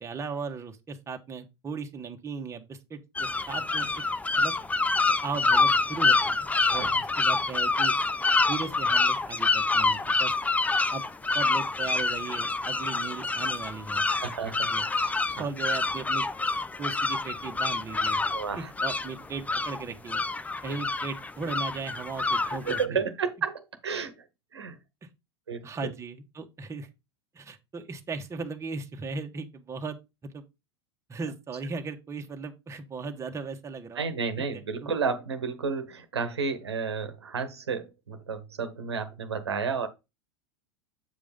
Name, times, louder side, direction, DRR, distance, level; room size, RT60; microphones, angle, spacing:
voice 1, 0.0-4.0 4.4-4.5 5.2-6.4 6.7-6.9 7.2-7.9 8.5-10.3 10.9-11.0 11.3-14.1 14.6-14.9 15.3-16.2 16.8-18.2 18.6-20.2 20.6-23.0 25.6-26.9 27.3-30.0 30.2-30.4 31.1-34.1 34.4-34.9, right 4 dB, 20° right, 1.4 m, -37 dB
sound 1, 3.2-22.9, left 3 dB, 10° left, 0.6 m, -27 dB
voice 2, 14.1-14.7 15.0-15.5 18.3-18.7 20.7-20.8 22.5-24.1 24.5-24.8 25.5-25.7 34.0-39.9, right 5 dB, 85° right, 1.2 m, -32 dB
8.1 x 5.0 x 3.6 m
hypercardioid pair, 85°, 14 cm